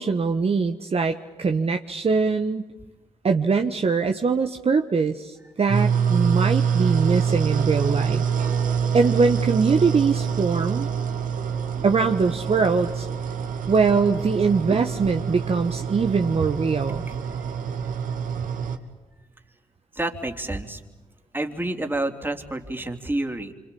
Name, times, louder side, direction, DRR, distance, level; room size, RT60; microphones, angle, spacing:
voice 1, 0.0-2.7 3.2-8.2 8.9-10.9 11.8-13.1 13.7-17.1, right 4 dB, 45° right, 5 dB, 1.4 m, -22 dB
sound 1, 5.7-18.8, right 7 dB, 70° right, 2.6 m, -26 dB
voice 2, 20.0-20.8 21.3-23.5, right 1 dB, 15° right, 4 dB, 3.6 m, -29 dB
26.5 x 26.5 x 8.6 m, 1.1 s
supercardioid pair, 55°, 14 cm